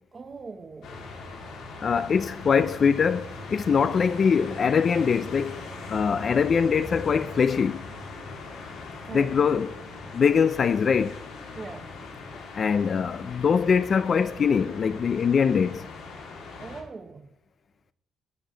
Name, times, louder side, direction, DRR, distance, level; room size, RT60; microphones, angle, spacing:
voice 1, 0.1-1.0 2.0-2.3 9.0-9.4 11.6-12.0 16.6-17.3, right 4 dB, 25° right, 0.9 m, -41 dB
sound 1, 0.8-16.8, left 3 dB, 80° left, 2.8 m, -40 dB
voice 2, 1.8-5.6 5.9-7.9 9.1-9.7 10.1-11.2 12.5-15.9, left 6 dB, 35° left, 0.3 m, -23 dB
18.0 x 6.8 x 3.9 m
cardioid pair, 145°, 0 cm